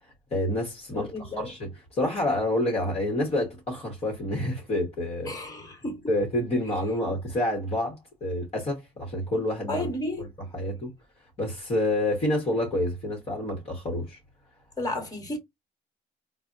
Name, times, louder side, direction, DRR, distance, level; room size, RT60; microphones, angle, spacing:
voice 1, 0.3-5.4 5.7-5.8 6.1-9.9 10.2-10.9 11.4-14.2, left 1 dB, 35° left, 1.0 m, -28 dB
voice 2, 0.9-1.5 5.3-6.0 9.7-10.2 14.8-15.4, left 1 dB, 20° left, 1.3 m, -32 dB
4.1 x 2.0 x 2.4 m
cardioid pair, 110°, 17 cm